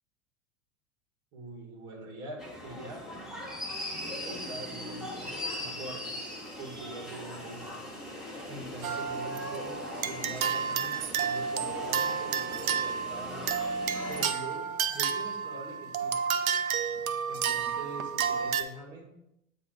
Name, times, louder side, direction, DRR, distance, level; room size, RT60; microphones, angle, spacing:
voice 1, 1.3-3.1 4.2-6.1 6.6-7.7 8.5-13.5 14.1-16.1 17.3-19.1, right 2 dB, 45° right, 1 dB, 1.8 m, -43 dB
sound 1, 2.4-14.3, left 1 dB, ahead, 1.3 m, -40 dB
sound 2, 8.8-18.6, right 7 dB, 75° right, 0.6 m, -31 dB
8.1 x 2.9 x 4.8 m, 0.84 s
figure-of-eight pair, 80°, 43 cm